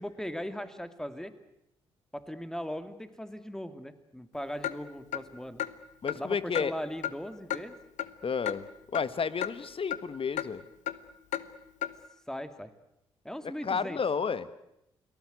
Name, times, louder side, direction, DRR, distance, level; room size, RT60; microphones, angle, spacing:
voice 1, 0.0-1.3 2.1-5.6 6.1-7.8 12.3-12.7 13.2-14.0, equal, 5° left, 10 dB, 2.6 m, -39 dB
Clock, 4.6-4.8 5.1-5.2 5.6-5.7 6.1-6.2 6.5-6.7 7.0-7.1 7.5-7.6 8.0-8.1 8.5-8.6 8.9-9.1 9.4-9.5 9.9-10.0 10.4-10.5 10.9-11.0 11.3-11.4 11.8-11.9, left 12 dB, 65° left, 1.1 m, -32 dB
voice 2, 6.0-6.7 8.2-8.7 8.9-10.6 13.6-14.5, left 5 dB, 40° left, 15 dB, 1.5 m, -31 dB
29.5 x 19.5 x 8.1 m, 0.82 s
hypercardioid pair, 40°, 14 cm